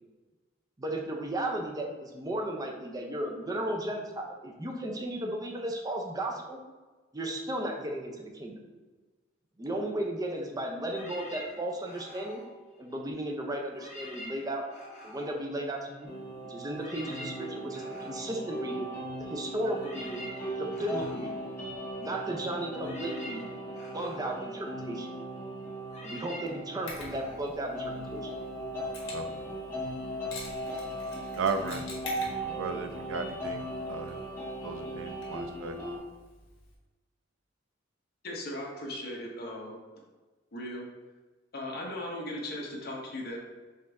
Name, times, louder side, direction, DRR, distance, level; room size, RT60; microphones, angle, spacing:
voice 1, 0.8-6.6 7.1-8.6 9.6-12.4 12.8-14.7 15.0-16.1 16.4-18.9 19.2-20.2 20.6-21.4 22.0-23.4 23.9-25.2 26.0-28.3, right 1 dB, 20° right, 1 dB, 0.5 m, -35 dB
sound 1, 10.9-13.3 13.7-16.2 16.5-28.4, left 1 dB, 35° left, 1.2 m, -48 dB
sound 2, 16.0-36.0, right 1 dB, 15° left, 1.1 m, -38 dB
Mechanisms, 26.9-36.7, left 2 dB, 85° left, 1.2 m, -48 dB
voice 2, 29.1-29.4 31.4-31.9 32.4-34.2 34.6-35.8, right 5 dB, 90° right, 8 dB, 0.4 m, -35 dB
voice 3, 38.2-39.8 40.5-40.9 41.5-43.4, left 1 dB, 55° left, -1 dB, 0.9 m, -37 dB
5.2 x 2.6 x 3.4 m, 1.3 s
head